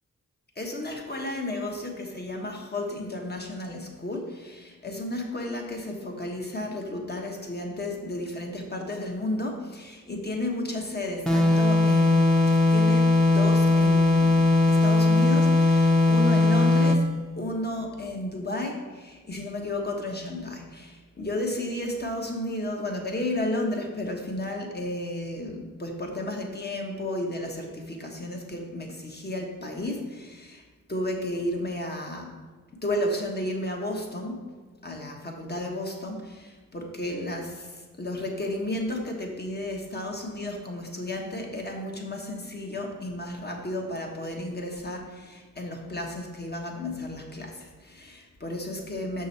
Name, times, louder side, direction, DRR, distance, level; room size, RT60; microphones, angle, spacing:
voice 1, 0.6-14.4 14.7-17.0 17.3-30.6 30.9-32.3 32.8-34.4 34.8-49.3, left 1 dB, 35° left, 1 dB, 1.3 m, -33 dB
sound 1, 11.3-17.1, left 2 dB, ahead, 0.8 m, -19 dB
6.3 x 6.2 x 4.2 m, 1.4 s
wide cardioid pair, 70°, 31 cm